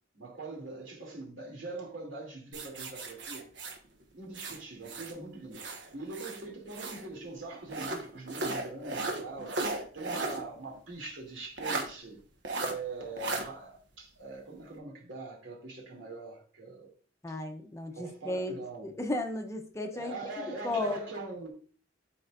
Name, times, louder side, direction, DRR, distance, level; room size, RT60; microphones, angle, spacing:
voice 1, 0.1-3.5 4.1-12.2 12.6-16.9 17.3-17.4 17.9-18.9 19.9-21.5, right 3 dB, 85° right, 2.7 m, -42 dB
sound 1, 2.5-5.2 5.5-7.1 7.7-10.4 10.8-10.9 11.6-11.9 12.4-12.7 13.2-13.4, right 2 dB, 65° right, 1.3 m, -36 dB
voice 2, 17.2-21.0, left 2 dB, 15° left, 0.7 m, -35 dB
12.5 x 4.5 x 2.5 m
head